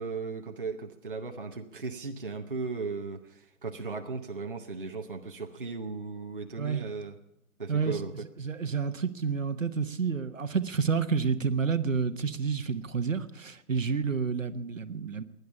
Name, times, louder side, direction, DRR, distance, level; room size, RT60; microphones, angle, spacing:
voice 1, 0.0-7.2 7.6-8.3, right 4 dB, 35° right, 4 dB, 0.8 m, -37 dB
voice 2, 8.4-15.2, right 5 dB, 60° right, 12 dB, 1.1 m, -29 dB
16.5 x 10.5 x 7.0 m, 0.80 s
hypercardioid pair, 175°, 43 cm